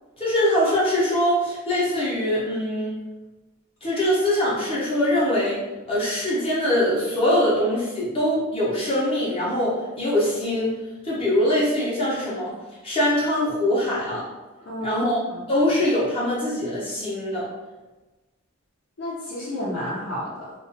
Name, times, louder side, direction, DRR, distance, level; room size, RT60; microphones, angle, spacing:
voice 1, 0.2-2.9 3.8-5.6 5.9-10.8 11.0-12.5 12.8-14.3 14.8-15.2 15.5-17.5, left 1 dB, 30° left, -8 dB, 0.6 m, -23 dB
voice 2, 14.7-15.0 15.3-15.5 19.0-20.5, equal, 85° left, -9 dB, 0.6 m, -31 dB
2.3 x 2.2 x 2.5 m, 1.2 s
head